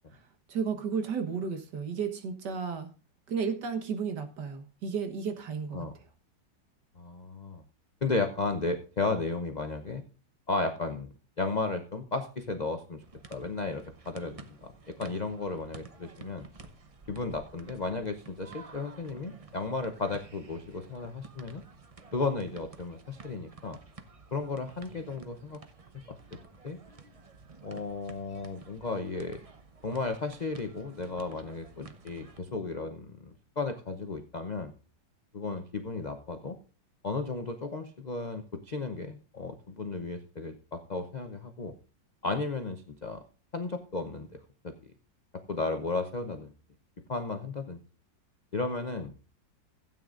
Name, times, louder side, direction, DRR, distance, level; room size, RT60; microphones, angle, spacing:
voice 1, 0.5-2.9 3.3-5.9, right 6 dB, 65° right, 7 dB, 1.9 m, -33 dB
voice 2, 7.0-7.6 8.0-10.0 10.5-13.0 13.3-16.5 17.1-21.6 22.1-23.8 24.3-25.6 26.1-26.4 26.6-26.8 27.6-29.4 29.8-34.7 35.3-36.6 37.0-41.7 42.2-43.2 43.5-44.9 45.3-46.5 47.1-47.8 48.5-49.1, left 3 dB, 85° left, 6 dB, 0.3 m, -34 dB
sound 1, 13.0-32.4, right 4 dB, 40° right, 0.5 m, -52 dB
16.0 x 8.9 x 2.5 m, 0.35 s
omnidirectional pair, 2.0 m